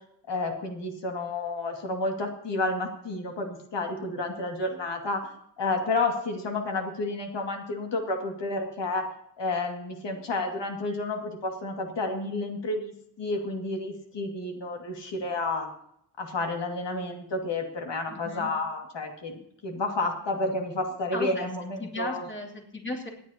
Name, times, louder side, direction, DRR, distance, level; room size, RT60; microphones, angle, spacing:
voice 1, 0.3-5.3 5.6-9.1 9.4-15.7 16.2-22.3, left 2 dB, 80° left, 2 dB, 2.3 m, -31 dB
voice 2, 18.1-18.5 21.1-21.5 21.8-23.1, left 1 dB, 25° left, 0 dB, 2.9 m, -35 dB
28.0 x 9.7 x 2.9 m, 0.74 s
wide cardioid pair, 140°, 42 cm